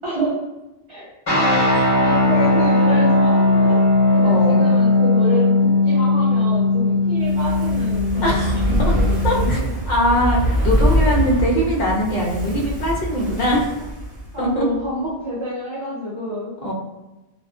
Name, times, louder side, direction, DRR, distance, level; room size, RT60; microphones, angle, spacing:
voice 1, 0.0-0.3 0.9-3.8 4.1-9.6 11.0-11.1 14.3-16.5, equal, 45° right, -7 dB, 0.4 m, -28 dB
sound 1, 1.3-9.5, left 2 dB, 25° left, 1.0 m, -18 dB
voice 2, 4.2-4.6 8.2-8.9 9.2-9.6 9.9-13.7 14.4-14.7 16.6-16.7, equal, 50° left, -3 dB, 0.7 m, -21 dB
Fire, 7.2-14.5 14.8-14.9, equal, 25° right, 0.9 m, -23 dB
2.4 x 2.3 x 2.4 m, 1.0 s
omnidirectional pair, 1.1 m